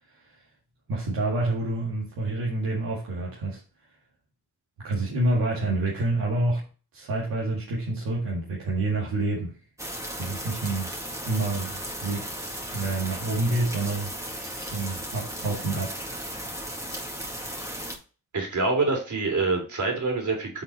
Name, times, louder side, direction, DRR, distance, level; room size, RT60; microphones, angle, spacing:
voice 1, 0.9-3.6 4.8-6.6 6.9-9.5 10.2-10.9 11.3-12.3 12.7-15.9 16.3-16.5, right 2 dB, 90° right, -5 dB, 2.0 m, -28 dB
sound 1, 9.8-18.0, equal, 10° right, 2.0 m, -35 dB
voice 2, 18.3-20.6, right 3 dB, 60° right, 2 dB, 3.1 m, -26 dB
7.9 x 4.0 x 4.2 m, 0.36 s
supercardioid pair, 50°, 34 cm